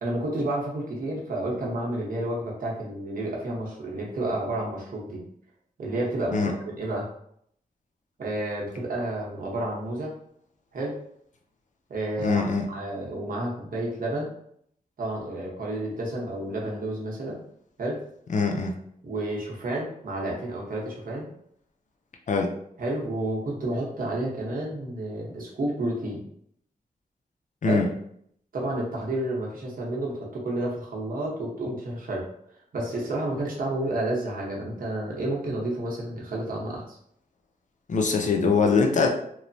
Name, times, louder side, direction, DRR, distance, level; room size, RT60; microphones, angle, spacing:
voice 1, 0.0-5.2 5.8-7.1 8.2-10.1 10.7-10.9 11.9-14.3 15.0-17.4 17.8-18.0 19.0-21.3 22.8-26.2 27.6-27.8 28.5-32.3 32.7-37.0, right 1 dB, 70° right, -3 dB, 0.8 m, -30 dB
voice 2, 12.2-12.7 18.3-18.7 22.3-22.5 27.6-27.9 37.9-39.1, left 4 dB, 55° left, 2 dB, 0.4 m, -22 dB
3.0 x 2.0 x 2.6 m, 0.69 s
wide cardioid pair, 125°, 15 cm